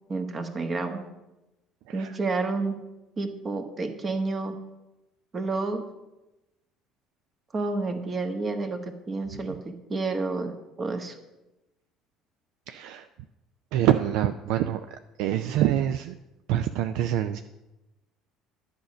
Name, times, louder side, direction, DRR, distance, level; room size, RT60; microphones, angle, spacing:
voice 1, 0.1-1.0 1.9-2.8 3.2-4.6 5.3-5.8 7.5-11.1, right 3 dB, 35° right, 6 dB, 1.3 m, -30 dB
voice 2, 12.7-13.1 13.7-14.8 15.2-16.2 16.5-17.4, right 11 dB, 65° right, 9 dB, 0.3 m, -25 dB
10.0 x 5.2 x 7.6 m, 0.99 s
hypercardioid pair, 60°, 0 cm